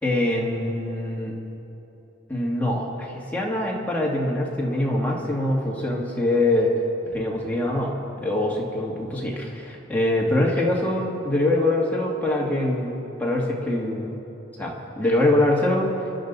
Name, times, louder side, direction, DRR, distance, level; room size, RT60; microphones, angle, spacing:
voice 1, 0.0-1.3 2.3-6.7 7.1-7.9 8.2-12.9 13.2-14.2 14.6-16.1, left 1 dB, 10° left, -4 dB, 2.1 m, -24 dB
28.0 x 11.0 x 4.1 m, 3.0 s
head